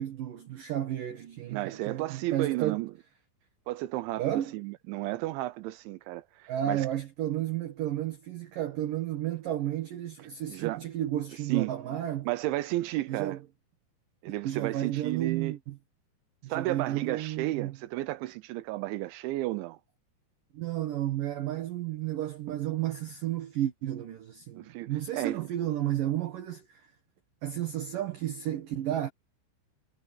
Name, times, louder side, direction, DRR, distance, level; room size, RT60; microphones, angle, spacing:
voice 1, 0.0-2.8 4.2-4.6 6.5-12.3 13.1-13.4 14.4-15.8 16.4-17.8 20.5-26.8 27.4-29.1, right 12 dB, 65° right, 2.4 m, -32 dB
voice 2, 1.5-2.9 3.7-6.9 10.5-10.8 11.5-11.7 12.3-13.4 14.2-15.6 16.5-19.8 24.6-25.4, right 17 dB, 80° right, 2.9 m, -33 dB
omnidirectional pair, 5.6 m